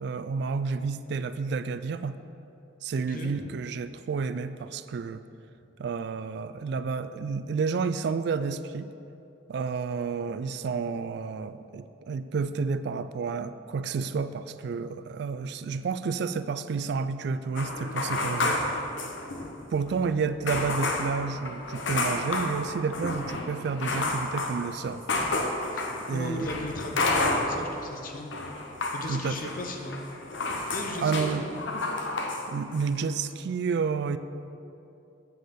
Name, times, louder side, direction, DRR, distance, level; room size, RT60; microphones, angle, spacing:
voice 1, 0.0-2.1 2.8-5.2 5.8-8.9 9.5-18.5 19.7-25.0 26.1-26.5 29.1-29.5 31.0-31.5 32.5-34.2, right 5 dB, 60° right, 12 dB, 0.3 m, -30 dB
voice 2, 2.9-3.4 18.4-18.7 25.7-28.3 28.9-30.0 30.7-31.7, left 1 dB, 50° left, 3 dB, 0.8 m, -37 dB
sound 1, 17.6-19.6 19.9-20.0 20.5-27.8 28.1-32.4 32.7-33.1, left 2 dB, 85° left, 0.9 m, -30 dB
8.1 x 5.2 x 5.8 m, 2.7 s
head